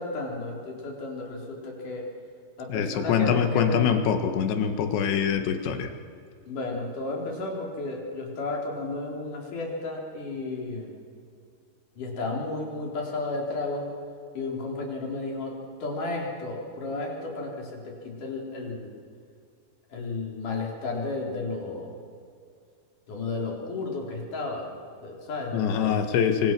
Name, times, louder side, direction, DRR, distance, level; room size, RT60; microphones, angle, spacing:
voice 1, 0.0-2.1 2.6-3.9 6.4-11.0 12.0-13.9 14.3-18.9 19.9-21.9 23.1-24.7 25.0-26.0, left 3 dB, 50° left, -1 dB, 5.4 m, -33 dB
voice 2, 2.7-5.9 25.5-26.5, left 7 dB, 90° left, 7 dB, 3.9 m, -24 dB
26.0 x 24.5 x 6.2 m, 2.4 s
omnidirectional pair, 4.9 m